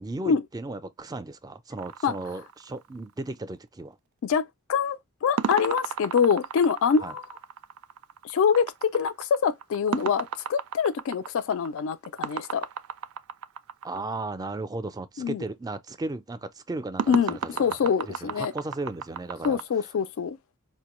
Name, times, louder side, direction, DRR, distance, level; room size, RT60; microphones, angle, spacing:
voice 1, 0.0-4.0 7.0-7.1 13.8-19.6, right 2 dB, 15° right, 0.4 m, -35 dB
sound 1, 1.8-3.2 5.4-14.0 17.0-19.6, right 7 dB, 85° right, 0.4 m, -34 dB
voice 2, 4.2-7.2 8.2-12.7 15.2-15.4 17.1-18.5 19.4-20.4, left 6 dB, 65° left, 0.3 m, -25 dB
4.9 x 2.2 x 2.9 m
head